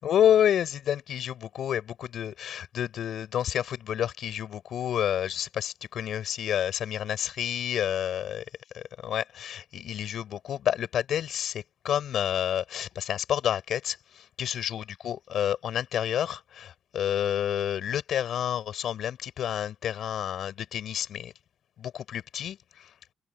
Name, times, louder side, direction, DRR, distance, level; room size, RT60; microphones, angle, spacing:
voice 1, 0.0-8.4 8.8-21.3 21.8-22.9, left 10 dB, 70° left, 6.0 m, -29 dB
open air
cardioid pair, 90°, 0 cm